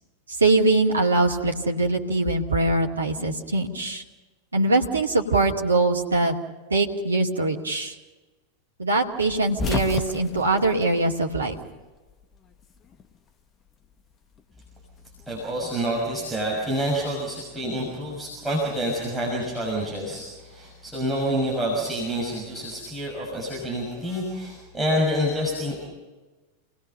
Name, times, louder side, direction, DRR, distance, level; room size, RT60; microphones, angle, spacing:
voice 1, 0.4-4.0 4.5-6.3 6.7-7.9 8.8-11.6, right 2 dB, 75° right, 1 dB, 2.3 m, -22 dB
sound 1, 9.3-11.8 12.1-13.2 14.4-15.8, left 4 dB, 25° left, 1.4 m, -32 dB
voice 2, 15.3-25.8, equal, 5° right, -5 dB, 6.4 m, -27 dB
29.0 x 20.0 x 5.6 m, 1.2 s
figure-of-eight pair, 90°, 0 cm